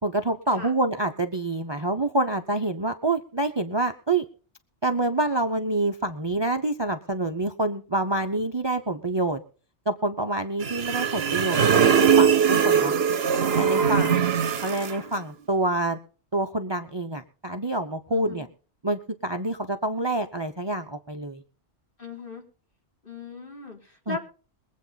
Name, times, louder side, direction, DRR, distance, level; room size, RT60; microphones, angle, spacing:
voice 1, 0.0-4.2 4.8-9.4 9.9-12.9 13.6-14.3 14.6-16.0 16.3-18.5 18.8-21.4 24.1-24.2, right 2 dB, 25° right, 7 dB, 0.8 m, -27 dB
sound 1, 10.6-15.0, right 7 dB, 65° right, 1.0 m, -21 dB
voice 2, 18.1-18.5 22.0-22.4 23.0-24.2, left 3 dB, 50° left, 0 dB, 4.3 m, -38 dB
22.5 x 8.3 x 4.1 m, 0.40 s
omnidirectional pair, 1.2 m